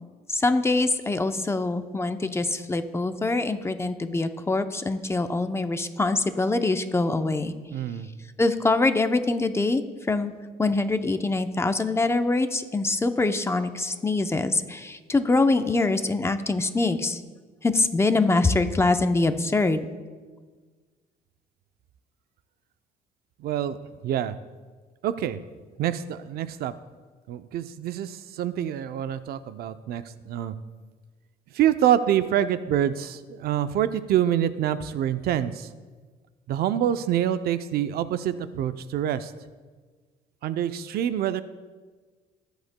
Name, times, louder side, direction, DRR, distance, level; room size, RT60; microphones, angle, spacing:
voice 1, 0.3-7.5 8.4-10.3 10.6-17.2 17.6-19.9, left 3 dB, 15° left, 8 dB, 0.6 m, -24 dB
voice 2, 7.7-8.1 23.4-23.8 24.0-24.4 25.0-25.4 25.8-26.7 27.3-30.6 31.5-35.7 36.5-39.3 40.4-41.4, right 10 dB, 65° right, 12 dB, 0.5 m, -26 dB
21.0 x 8.0 x 2.2 m, 1.4 s
cardioid pair, 110°, 17 cm